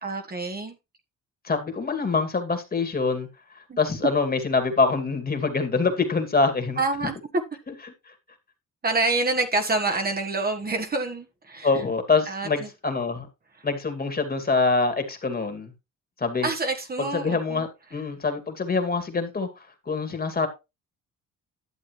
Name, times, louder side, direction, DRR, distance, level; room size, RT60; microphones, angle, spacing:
voice 1, 0.0-0.8 3.7-3.8 6.8-7.2 8.8-11.7 12.3-12.7 16.4-17.7, right 3 dB, 30° right, 1.5 m, -27 dB
voice 2, 1.4-3.3 3.8-6.8 11.6-13.3 13.6-15.7 16.2-16.5 17.1-20.5, left 4 dB, 30° left, 2.3 m, -25 dB
11.5 x 7.3 x 3.1 m
cardioid pair, 90°, 30 cm